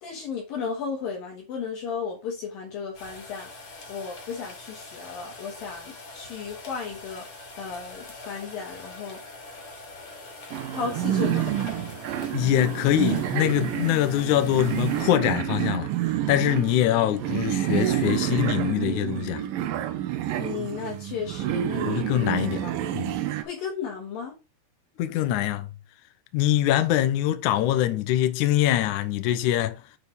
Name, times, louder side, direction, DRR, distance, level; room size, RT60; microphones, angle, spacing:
voice 1, 0.0-3.5 3.9-7.3 7.6-9.2 10.7-11.4 20.4-22.3 22.6-22.7 23.4-24.3, left 6 dB, 65° left, 2.8 m, -34 dB
sound 1, 3.0-15.1, left 2 dB, 45° left, 3.9 m, -43 dB
sound 2, 10.5-23.4, right 12 dB, 75° right, 2.1 m, -28 dB
voice 2, 12.3-19.4 21.9-22.6 22.9-23.2 25.0-25.7 26.3-29.8, left 13 dB, 85° left, 1.7 m, -24 dB
8.8 x 5.3 x 4.2 m
omnidirectional pair, 4.9 m